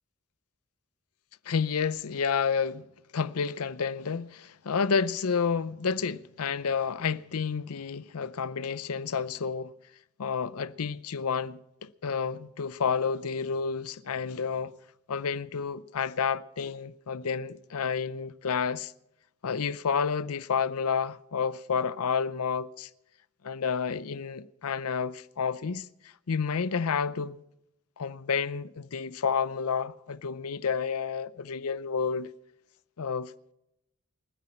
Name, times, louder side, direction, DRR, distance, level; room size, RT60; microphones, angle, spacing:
voice 1, 1.5-2.9 3.1-9.7 10.2-14.7 15.1-18.9 19.4-22.9 23.4-25.9 26.3-27.4 28.0-32.3 33.0-33.3, left 6 dB, 90° left, 0.6 m, -30 dB
29.0 x 9.8 x 4.4 m
head